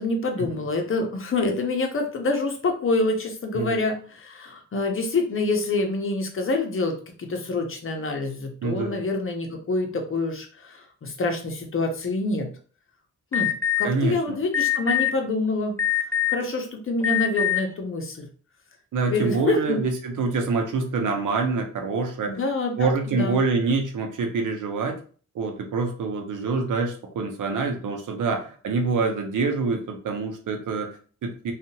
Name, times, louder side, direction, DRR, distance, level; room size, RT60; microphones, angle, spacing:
voice 1, 0.0-12.5 13.3-13.5 13.8-15.7 16.3-18.3 19.1-19.8 22.3-23.4, left 3 dB, 45° left, 4 dB, 0.7 m, -26 dB
voice 2, 8.6-9.0 13.8-14.4 18.9-22.4 22.8-25.0 25.3-31.5, right 4 dB, 80° right, 3 dB, 0.7 m, -26 dB
Alarm, 13.3-13.8 14.5-15.1 15.8-16.4 17.0-17.6, left 11 dB, 10° left, 0.3 m, -22 dB
2.7 x 2.4 x 2.7 m, 0.41 s
cardioid pair, 85°, 31 cm